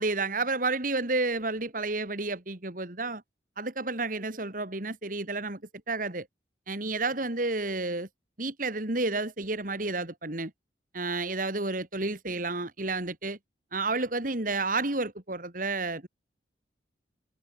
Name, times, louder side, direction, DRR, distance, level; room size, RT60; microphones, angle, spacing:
voice 1, 0.0-3.2 3.6-5.6 5.9-6.3 6.7-8.1 8.4-10.5 10.9-13.4 13.7-16.1, right 3 dB, 45° right, 2.5 m, -30 dB
head